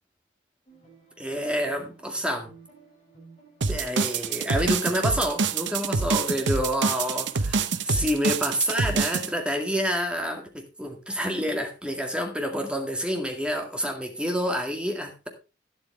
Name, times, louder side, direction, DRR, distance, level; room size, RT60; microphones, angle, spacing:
sound 1, 0.7-6.1, right 4 dB, 30° left, 7.5 m, -54 dB
voice 1, 1.2-2.5 3.7-15.3, equal, 5° right, 3 dB, 2.0 m, -28 dB
sound 2, 3.6-9.3, right 4 dB, 70° right, 0.8 m, -26 dB
12.0 x 10.5 x 3.3 m, 0.29 s
head